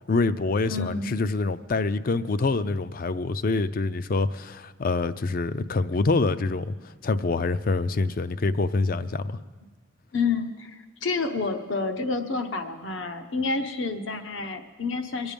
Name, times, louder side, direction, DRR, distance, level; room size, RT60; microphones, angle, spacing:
voice 1, 0.1-9.4, left 3 dB, 45° left, 13 dB, 0.5 m, -26 dB
voice 2, 0.7-1.1 10.1-15.3, left 4 dB, 75° left, 7 dB, 1.1 m, -29 dB
23.0 x 8.7 x 5.2 m, 1.5 s
head